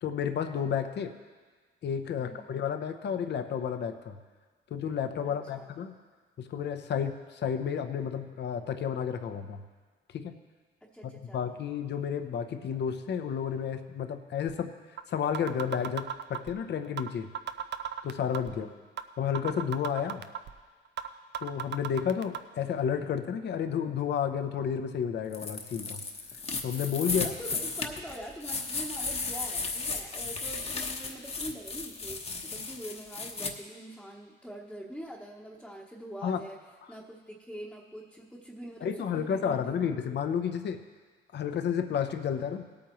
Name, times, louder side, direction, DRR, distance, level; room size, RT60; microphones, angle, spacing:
voice 1, 0.0-1.1 1.8-4.2 4.7-5.9 6.4-9.6 10.1-10.3 11.0-14.7 15.1-17.3 18.0-18.7 19.2-20.2 21.4-26.0 26.6-27.3 36.2-36.4 38.8-40.8 41.3-42.7, left 7 dB, 60° left, 8 dB, 0.8 m, -31 dB
voice 2, 2.2-2.6 5.2-5.7 10.8-11.4 18.5-18.8 27.2-36.6 36.9-40.0, equal, ahead, -3 dB, 1.1 m, -44 dB
sound 1, 14.5-14.6 15.0-15.1 15.3-16.5 17.0-17.1 17.3-18.5 19.0-19.1 19.3-20.5 21.0-21.1 21.3-22.4, right 9 dB, 60° right, 0.6 m, -34 dB
sound 2, 25.3-33.5, left 4 dB, 30° left, 1.1 m, -35 dB
18.0 x 8.7 x 3.1 m, 1.4 s
cardioid pair, 90°, 20 cm